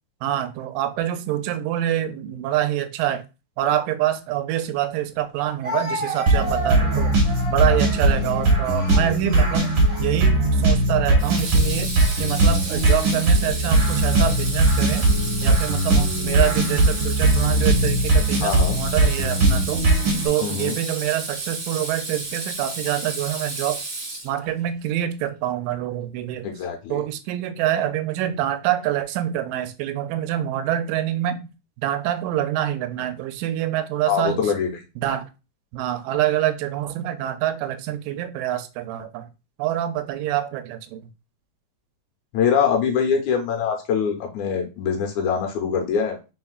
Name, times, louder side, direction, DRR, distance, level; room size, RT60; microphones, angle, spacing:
voice 1, 0.2-3.2 3.6-7.1 7.5-9.7 10.0-11.9 12.2-15.1 15.4-19.9 20.2-23.9 24.2-26.5 26.9-31.4 31.8-34.5 35.0-35.3 35.7-39.3 39.6-41.0, right 12 dB, 85° right, 9 dB, 2.2 m, -26 dB
Speech, 4.5-4.6 5.6-10.5 11.3-11.6 12.5-13.1, right 2 dB, 15° right, 1.4 m, -33 dB
sound 1, 6.3-20.3, right 2 dB, 60° right, 1.6 m, -19 dB
Water tap faucet / Sink (filling or washing), 9.5-9.9 11.2-24.6, right 2 dB, 40° right, 1.8 m, -32 dB
voice 2, 18.4-18.8 20.4-20.8 26.4-27.0 34.1-34.8 42.3-46.2, left 7 dB, 70° left, 3 dB, 2.0 m, -23 dB
4.4 x 4.2 x 2.3 m, 0.29 s
omnidirectional pair, 3.9 m